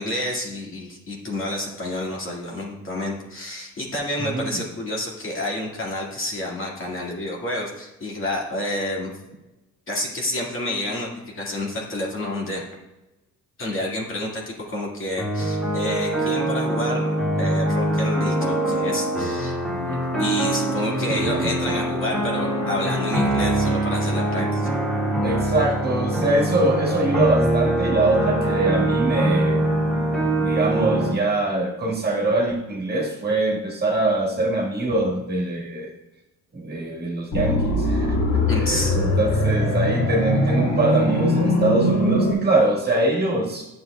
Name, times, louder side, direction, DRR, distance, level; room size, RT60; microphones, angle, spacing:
voice 1, 0.0-9.2 9.9-12.6 13.6-24.7 38.5-39.0, left 1 dB, 45° left, -3 dB, 2.1 m, -29 dB
voice 2, 4.2-4.6 16.2-16.4 21.1-21.4 25.2-29.6 30.4-35.9 36.5-38.2 38.7-43.7, right 2 dB, 35° right, -2 dB, 1.7 m, -23 dB
sound 1, 15.2-31.1, right 1 dB, ahead, 2.0 m, -23 dB
sound 2, 37.3-42.3, left 1 dB, 65° left, 1.8 m, -21 dB
9.3 x 7.0 x 2.3 m, 1.0 s
cardioid pair, 90°, 30 cm